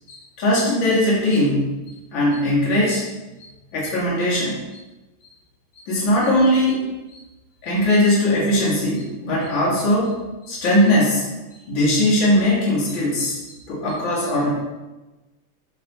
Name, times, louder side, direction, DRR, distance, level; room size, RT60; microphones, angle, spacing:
voice 1, 0.1-1.8 2.1-3.0 3.7-4.6 5.9-6.8 7.6-10.2 10.5-11.3 11.7-13.4 13.7-14.5, left 1 dB, 65° left, -6 dB, 2.5 m, -19 dB
8.0 x 4.3 x 4.0 m, 1.1 s
omnidirectional pair, 2.3 m